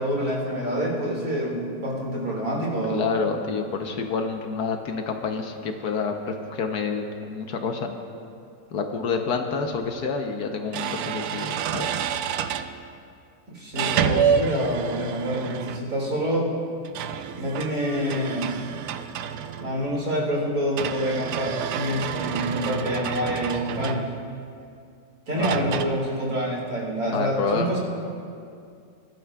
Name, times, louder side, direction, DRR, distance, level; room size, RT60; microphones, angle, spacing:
voice 1, 0.0-3.1 13.5-16.5 17.4-18.6 19.6-24.1 25.3-27.8, equal, 55° right, -4 dB, 2.7 m, -27 dB
voice 2, 2.9-8.0 8.7-12.0 25.3-25.5 27.1-27.8, left 5 dB, 70° left, 4 dB, 1.3 m, -28 dB
sound 1, 9.8-9.9 10.7-12.7 13.7-16.0 16.8-19.9 20.8-24.4 25.4-25.8, right 8 dB, 70° right, 0.9 m, -28 dB
21.5 x 12.0 x 2.3 m, 2.4 s
omnidirectional pair, 1.9 m